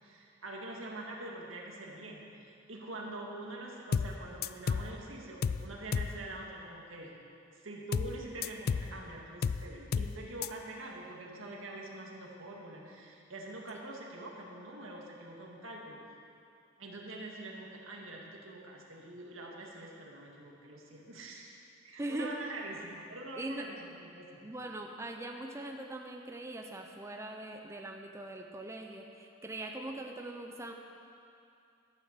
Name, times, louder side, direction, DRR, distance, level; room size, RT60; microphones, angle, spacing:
voice 1, 0.0-2.3 2.7-7.1 7.5-16.0 16.8-21.6 21.8-24.5, right 2 dB, 80° right, -1 dB, 1.9 m, -45 dB
sound 1, 3.9-4.2 4.4-4.9 5.4-5.7 5.9-6.2 7.9-8.2 8.4-8.9 9.4-9.7 9.9-10.2 10.4-10.5, left 6 dB, 50° left, 0.3 m, -31 dB
voice 2, 22.0-22.3 23.3-23.7 24.4-30.7, right 1 dB, 15° right, 2 dB, 0.6 m, -41 dB
12.5 x 8.3 x 6.6 m, 2.6 s
head